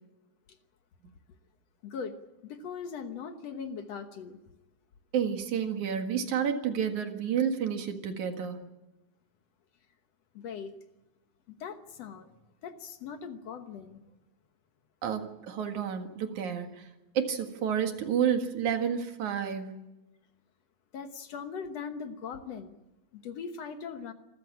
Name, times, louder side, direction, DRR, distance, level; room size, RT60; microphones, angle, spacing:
voice 1, 1.8-4.4 10.3-10.7 11.6-12.3 12.6-14.0 20.9-22.8 23.1-24.1, left 6 dB, 60° left, 8 dB, 2.1 m, -40 dB
voice 2, 5.1-8.6 15.0-16.9 17.1-19.8, right 8 dB, 75° right, 6 dB, 3.2 m, -30 dB
26.5 x 14.5 x 8.6 m, 1.0 s
omnidirectional pair, 3.5 m